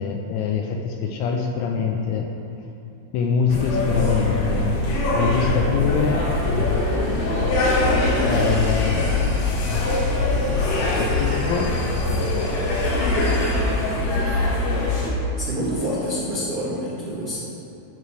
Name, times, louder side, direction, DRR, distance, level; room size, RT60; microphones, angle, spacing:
voice 1, 0.0-2.3 3.1-4.8 5.1-6.3 8.2-9.7 10.9-12.7, left 5 dB, 85° left, 2 dB, 2.7 m, -25 dB
sound 1, 3.5-15.1, left 2 dB, 65° left, 2.4 m, -22 dB
voice 2, 15.4-17.4, equal, 85° right, -10 dB, 1.2 m, -27 dB
15.5 x 5.5 x 3.3 m, 2.7 s
omnidirectional pair, 5.7 m